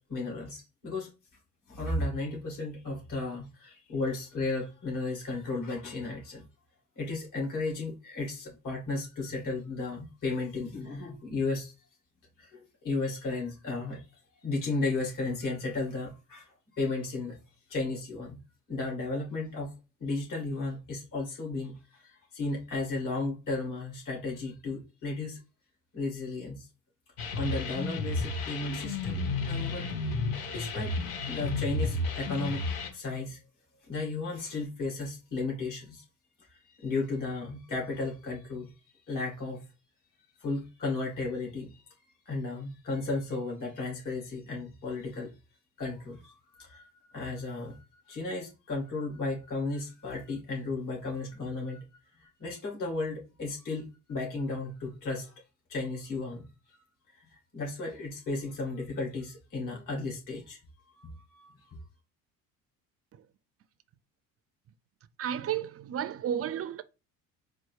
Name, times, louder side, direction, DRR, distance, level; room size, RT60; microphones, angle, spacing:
voice 1, 0.1-1.1 1.7-6.4 7.0-11.7 12.4-14.0 14.4-17.4 17.7-18.4 18.7-19.7 20.0-25.4 25.9-26.7 27.3-29.2 29.5-29.8 30.5-31.0 31.3-32.6 32.9-33.4 33.8-36.0 36.5-38.7 39.1-39.7 40.4-41.8 42.3-45.3 45.8-51.8 52.2-55.3 55.7-56.5 57.2-60.6 61.0-61.5, left 3 dB, 45° left, 2.3 m, -34 dB
sound 1, 27.2-32.9, left 3 dB, 80° left, 1.0 m, -32 dB
voice 2, 65.2-66.8, right 9 dB, 35° right, 0.5 m, -32 dB
4.4 x 2.0 x 4.6 m
hypercardioid pair, 70°, 42 cm